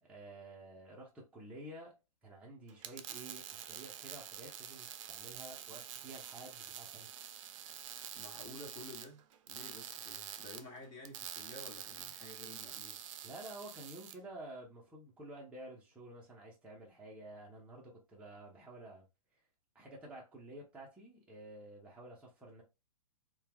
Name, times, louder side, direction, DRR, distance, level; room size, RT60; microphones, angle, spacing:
voice 1, 0.0-1.9 2.2-7.1 13.2-19.0 19.7-22.6, right 1 dB, 5° right, 0.7 m, -51 dB
sound 1, 2.7-14.2, right 10 dB, 55° right, 0.4 m, -47 dB
voice 2, 8.1-13.0, left 2 dB, 25° left, 1.2 m, -51 dB
3.0 x 2.3 x 2.2 m
hypercardioid pair, 135°, 19 cm